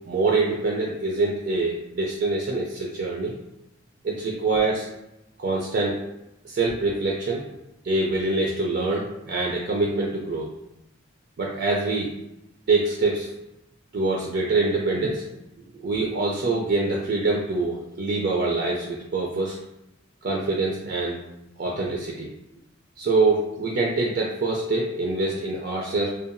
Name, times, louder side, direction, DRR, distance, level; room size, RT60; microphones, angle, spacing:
voice 1, 0.1-3.3 4.0-4.9 5.4-6.0 6.4-7.5 7.8-10.5 11.4-12.1 12.7-13.3 13.9-15.2 15.7-19.6 20.2-21.2 21.6-22.3 23.0-26.1, right 3 dB, 55° right, -3 dB, 0.4 m, -25 dB
2.7 x 2.2 x 2.5 m, 0.89 s
head